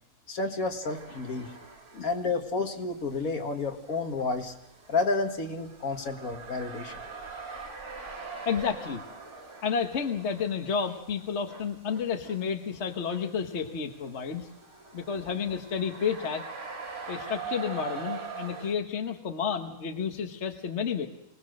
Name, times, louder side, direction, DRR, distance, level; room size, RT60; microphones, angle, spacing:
voice 1, 0.3-1.5 2.0-4.5 4.9-7.0, left 3 dB, 70° left, 5 dB, 2.1 m, -30 dB
sound 1, 0.8-2.3 2.7-18.7, right 5 dB, 90° right, 3.2 m, -43 dB
voice 2, 8.4-9.0 9.6-14.5 14.9-16.5 17.1-21.1, left 6 dB, 50° left, 5 dB, 1.5 m, -31 dB
24.5 x 19.0 x 6.5 m, 0.90 s
omnidirectional pair, 1.5 m